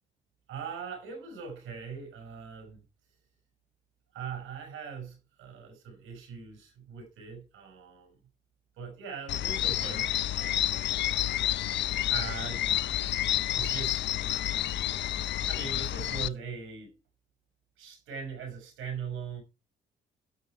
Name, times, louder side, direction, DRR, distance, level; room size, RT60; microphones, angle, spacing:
voice 1, 0.5-2.8 4.1-8.2 8.8-10.8 12.1-12.8 13.5-14.0 15.5-16.9 17.8-19.4, right 6 dB, 85° right, 5.1 m, -40 dB
sound 1, 9.3-16.3, left 12 dB, 65° left, 0.5 m, -29 dB
12.0 x 5.8 x 4.7 m
cardioid pair, 90°, 20 cm